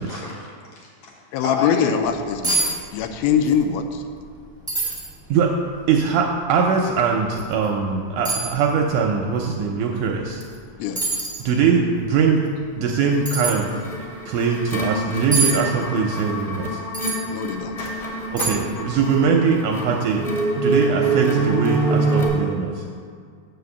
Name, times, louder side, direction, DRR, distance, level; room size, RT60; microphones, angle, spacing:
voice 1, 0.0-1.1 1.4-1.9 17.8-18.5, left 4 dB, 60° left, -3 dB, 2.1 m, -31 dB
voice 2, 1.3-4.0 10.8-11.0 17.3-17.8, left 7 dB, 85° left, 7 dB, 2.4 m, -23 dB
sound 1, 2.1-2.2 2.4-2.7 3.0-3.6 3.9-4.0 4.7-5.1 5.7-5.8 7.3-7.5 8.2-8.5 10.4-10.6 11.0-11.5 13.2-13.5 15.3-15.5 16.9-17.2 17.8-17.9 18.4-18.8 19.1-19.2, right 3 dB, 5° right, 0.7 m, -24 dB
voice 3, 5.9-10.4 11.5-12.4 12.8-13.8 14.3-16.8 18.3-20.3 20.6-22.9, right 5 dB, 80° right, 1 dB, 1.9 m, -21 dB
sound 2, 13.1-22.3, right 3 dB, 15° left, 1.8 m, -25 dB
8.0 x 5.1 x 7.0 m, 2.1 s
omnidirectional pair, 4.1 m